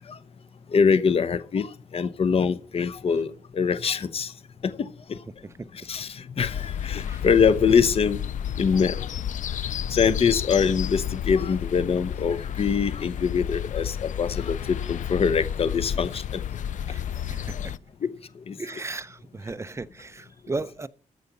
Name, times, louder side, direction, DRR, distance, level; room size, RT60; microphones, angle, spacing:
voice 1, 0.7-3.3 3.5-4.3 4.6-4.9 5.9-8.2 8.6-9.0 9.9-16.4 18.0-18.1 18.5-18.6, left 6 dB, 45° left, 0.8 m, -23 dB
sound 1, 6.4-17.8, left 9 dB, 70° left, 0.5 m, -31 dB
voice 2, 16.9-17.6 18.6-20.9, right 3 dB, 20° right, 0.7 m, -35 dB
14.0 x 5.2 x 8.0 m
wide cardioid pair, 115°, 13 cm